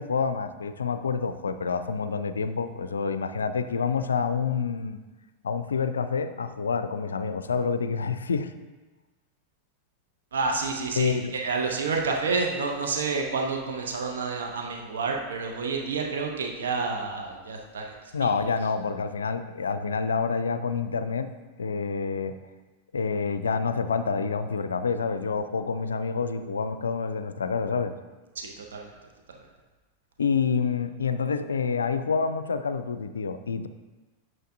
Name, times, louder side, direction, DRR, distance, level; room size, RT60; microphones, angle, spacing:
voice 1, 0.0-5.0 5.4-8.5 11.0-11.3 18.1-21.3 21.6-22.4 22.9-27.9 30.2-33.7, left 5 dB, 70° left, 11 dB, 0.4 m, -28 dB
voice 2, 10.3-17.9 18.2-18.3 28.4-28.9, right 4 dB, 65° right, 1 dB, 0.8 m, -29 dB
8.9 x 6.1 x 2.6 m, 1.2 s
figure-of-eight pair, 90°, 0 cm